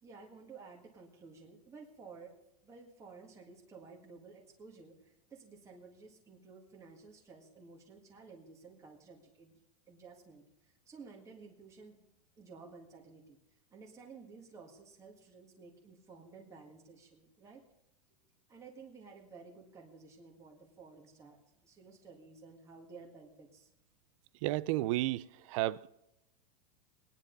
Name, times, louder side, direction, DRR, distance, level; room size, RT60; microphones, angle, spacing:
voice 1, 0.0-2.4 2.6-9.6 9.9-12.0 12.4-17.6 18.5-23.7, right 4 dB, 15° right, 1.9 m, -54 dB
voice 2, 24.4-25.9, right 17 dB, 55° right, 0.5 m, -32 dB
20.0 x 10.0 x 4.0 m
supercardioid pair, 150°, 20 cm